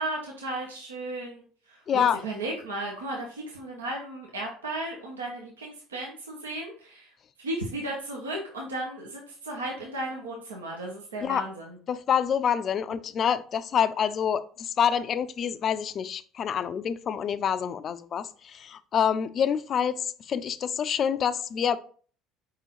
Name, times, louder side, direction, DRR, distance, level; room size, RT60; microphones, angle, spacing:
voice 1, 0.0-7.1 7.4-11.8, right 1 dB, 85° right, 0.8 m, -35 dB
voice 2, 1.9-2.2 11.2-11.4 11.9-21.8, left 8 dB, 45° left, 0.4 m, -27 dB
4.8 x 3.7 x 3.0 m
hypercardioid pair, 65°, 0 cm